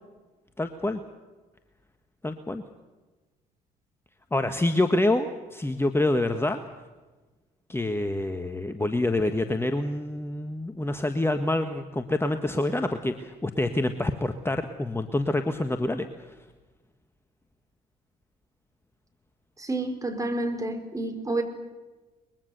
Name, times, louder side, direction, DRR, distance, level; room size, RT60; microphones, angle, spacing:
voice 1, 0.6-1.0 2.2-2.6 4.3-6.6 7.7-16.3, left 2 dB, 10° left, 8 dB, 1.5 m, -27 dB
voice 2, 19.6-21.4, right 2 dB, 15° right, 5 dB, 4.8 m, -29 dB
23.0 x 21.5 x 6.8 m, 1.2 s
hypercardioid pair, 55°, 20 cm